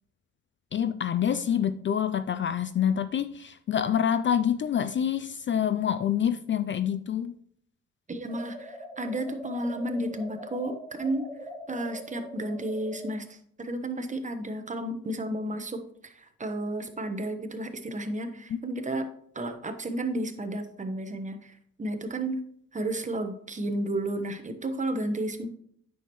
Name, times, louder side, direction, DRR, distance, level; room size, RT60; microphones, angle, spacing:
voice 1, 0.7-7.3, left 9 dB, 40° left, 0.4 m, -27 dB
voice 2, 8.1-19.1 19.3-22.4 22.7-25.5, right 1 dB, 25° right, 1.1 m, -32 dB
sound 1, 8.3-13.2, left 1 dB, 5° right, 1.5 m, -42 dB
9.0 x 6.3 x 3.0 m
cardioid pair, 90°, 30 cm